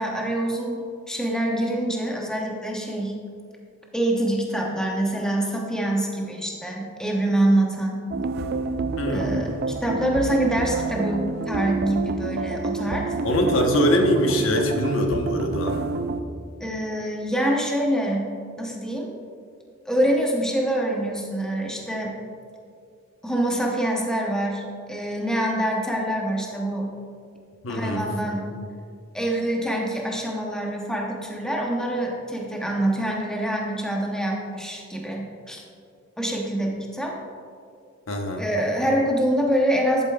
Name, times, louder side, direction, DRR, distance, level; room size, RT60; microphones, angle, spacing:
voice 1, 0.0-3.1 3.9-8.1 9.1-13.1 16.6-18.3 18.6-19.1 19.9-22.2 23.2-26.9 27.7-28.5 29.1-35.6 36.2-37.2 38.4-40.1, right 1 dB, 5° left, -1 dB, 0.8 m, -25 dB
sound 1, 8.1-16.2, right 3 dB, 50° right, 0.3 m, -28 dB
voice 2, 9.0-9.3 13.2-15.8 27.6-28.1 38.1-38.5, equal, 85° left, 2 dB, 1.0 m, -23 dB
11.0 x 8.0 x 2.3 m, 2.3 s
head